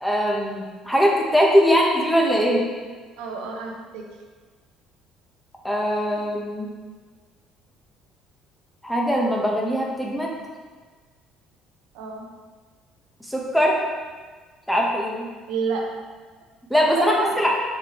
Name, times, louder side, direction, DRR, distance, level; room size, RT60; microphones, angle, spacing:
voice 1, 0.0-2.6 5.6-6.7 8.8-10.3 13.3-13.8 14.7-15.3 16.7-17.5, equal, 5° left, -2 dB, 1.2 m, -21 dB
voice 2, 3.2-4.1 11.9-12.3 15.5-16.0 16.9-17.4, right 4 dB, 90° right, 0 dB, 0.9 m, -29 dB
6.6 x 4.5 x 3.2 m, 1.4 s
cardioid pair, 95°, 0 cm